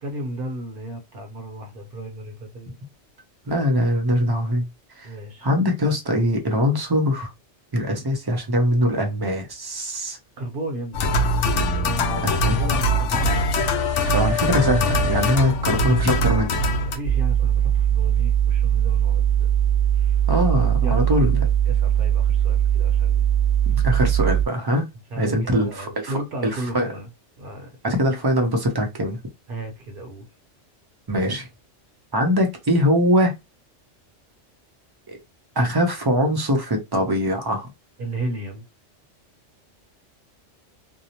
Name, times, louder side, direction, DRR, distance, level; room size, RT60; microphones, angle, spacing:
voice 1, 0.0-2.8 5.0-5.5 10.4-11.1 11.7-13.5 16.8-19.5 19.9-20.3 20.8-23.2 23.7-23.9 25.1-27.1 27.4-27.8 29.5-30.3 38.0-38.7, right 1 dB, 55° right, 0.8 m, -34 dB
voice 2, 3.5-4.7 5.0-5.1 5.4-7.3 7.7-10.2 12.2-12.6 14.1-16.6 20.3-21.4 23.7-24.9 25.2-25.7 26.0-26.9 27.8-29.2 31.1-31.5 32.1-33.3 35.1-35.2 35.6-37.7, equal, 35° right, 0.4 m, -22 dB
sound 1, 10.9-17.0, left 1 dB, 80° left, 0.9 m, -22 dB
sound 2, 17.0-24.4, right 10 dB, 50° left, 0.9 m, -20 dB
2.6 x 2.0 x 2.8 m
omnidirectional pair, 1.2 m